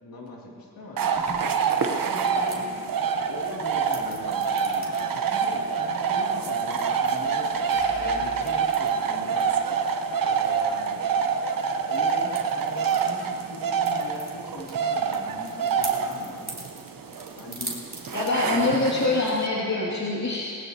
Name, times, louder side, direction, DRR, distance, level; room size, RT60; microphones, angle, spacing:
voice 1, 0.0-1.0 1.7-2.7 3.3-7.5 8.0-9.5 10.2-11.0 11.9-16.4 17.3-17.8 18.5-19.3, left 2 dB, 85° left, -3 dB, 2.8 m, -41 dB
sound 1, 1.0-18.3, right 2 dB, 25° right, 3.4 m, -45 dB
sound 2, 1.0-19.5, right 6 dB, 80° right, 1.0 m, -26 dB
sound 3, 7.0-9.8, right 2 dB, 60° right, 4.1 m, -45 dB
voice 2, 18.1-20.6, left 2 dB, 55° left, -6 dB, 2.5 m, -24 dB
20.0 x 19.5 x 2.9 m, 2.4 s
cardioid pair, 60°, 34 cm